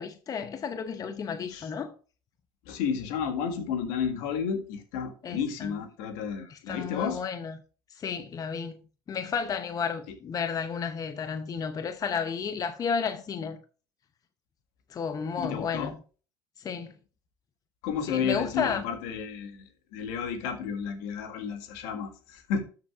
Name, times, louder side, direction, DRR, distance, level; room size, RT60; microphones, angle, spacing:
voice 1, 0.0-1.9 5.2-5.7 6.5-7.5 7.9-8.8 9.1-13.6 14.9-15.9 16.6-16.9 18.1-18.8, left 6 dB, 35° left, 0.8 m, -32 dB
voice 2, 2.7-7.2 9.4-9.5 10.1-10.2 15.4-16.0 17.8-19.5 19.9-22.6, left 6 dB, 70° left, 1.8 m, -32 dB
13.0 x 6.7 x 2.4 m
hypercardioid pair, 80°, 11 cm